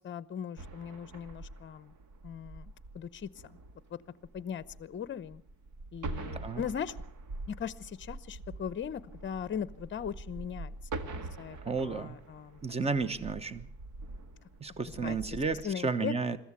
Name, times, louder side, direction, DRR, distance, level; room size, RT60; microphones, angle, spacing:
voice 1, 0.0-1.9 2.2-3.6 3.9-4.0 4.3-5.4 5.9-7.0 7.5-11.6 11.8-12.6 15.0-15.2 15.6-16.1, left 8 dB, 35° left, 18 dB, 0.8 m, -39 dB
sound 1, 0.6-15.7, right 2 dB, 55° right, 1.9 m, -45 dB
voice 2, 11.6-12.1 12.6-13.7 14.6-16.4, right 4 dB, 15° right, 15 dB, 1.2 m, -32 dB
22.0 x 14.5 x 8.3 m, 0.63 s
cardioid pair, 125°, 36 cm